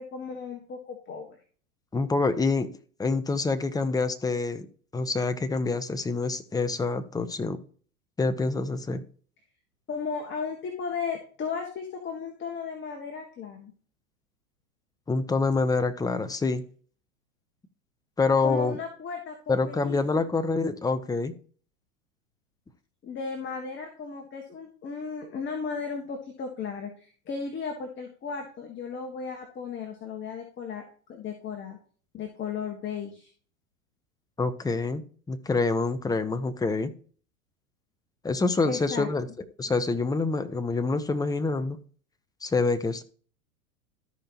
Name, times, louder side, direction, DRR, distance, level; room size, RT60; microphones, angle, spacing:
voice 1, 0.0-1.4 9.9-13.7 18.4-20.2 23.0-30.8 31.1-31.8 32.1-33.3 38.7-39.1, left 5 dB, 25° left, 1.8 m, -35 dB
voice 2, 1.9-2.7 3.0-4.7 4.9-7.6 8.2-9.0 15.1-16.6 18.2-18.8 19.5-21.3 34.4-36.9 38.2-39.3 39.6-41.8 42.4-43.0, left 3 dB, 10° left, 0.8 m, -26 dB
13.5 x 5.5 x 2.9 m
hypercardioid pair, 105°, 44 cm